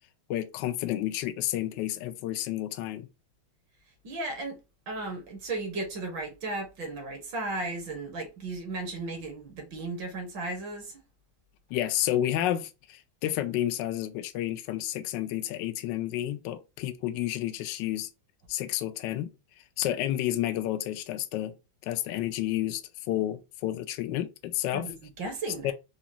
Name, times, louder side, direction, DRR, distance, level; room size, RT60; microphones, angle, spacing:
voice 1, 0.3-3.1 11.7-18.1 18.5-19.3 19.8-21.6 21.8-22.8 23.1-24.9 25.6-25.7, left 13 dB, 75° left, 1.0 m, -30 dB
voice 2, 4.0-4.6 4.9-11.0 24.7-25.7, right 2 dB, 60° right, 1.7 m, -35 dB
5.0 x 2.3 x 2.7 m
omnidirectional pair, 2.3 m